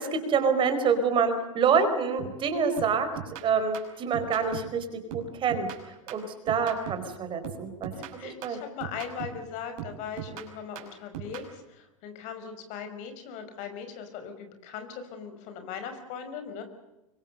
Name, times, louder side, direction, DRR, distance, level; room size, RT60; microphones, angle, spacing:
voice 1, 0.0-3.1 3.4-5.7 6.1-7.9 8.2-8.6, right 6 dB, 30° right, 8 dB, 4.8 m, -26 dB
sound 1, 2.2-2.5 2.8-4.8 5.1-7.1 7.4-9.5 9.8-11.5, right 10 dB, 50° right, 5.7 m, -40 dB
voice 2, 8.2-11.4 12.0-16.6, left 7 dB, 45° left, 8 dB, 5.5 m, -39 dB
26.0 x 24.0 x 6.7 m, 0.97 s
hypercardioid pair, 100°, 17 cm